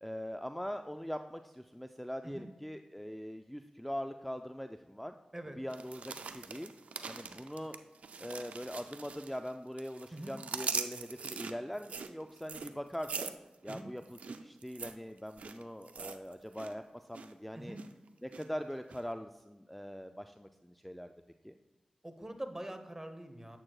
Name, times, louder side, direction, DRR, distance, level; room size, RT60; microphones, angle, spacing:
voice 1, 0.0-5.1 5.6-6.7 7.1-7.8 8.2-13.3 13.6-17.8 18.2-21.1 21.4-21.6, equal, 5° left, 7 dB, 0.4 m, -42 dB
sound 1, 5.7-9.5 9.8-16.7 17.0-17.3 17.7-18.4 18.9-19.0, right 5 dB, 85° right, 0.4 m, -42 dB
voice 2, 17.5-17.9 22.0-23.6, right 1 dB, 20° right, 7 dB, 1.0 m, -44 dB
8.6 x 7.5 x 2.3 m, 1.1 s
cardioid pair, 40°, 2 cm